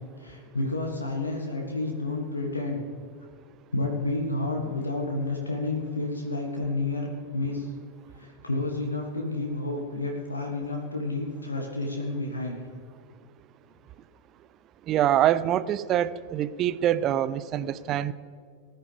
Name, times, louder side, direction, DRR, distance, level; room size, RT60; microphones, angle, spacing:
voice 1, 0.2-2.8 3.7-7.7 8.2-12.6, left 2 dB, 80° left, 1 dB, 1.6 m, -30 dB
voice 2, 14.9-18.1, right 11 dB, 35° right, 16 dB, 0.5 m, -25 dB
19.0 x 10.5 x 3.4 m, 2.3 s
figure-of-eight pair, 90°, 0 cm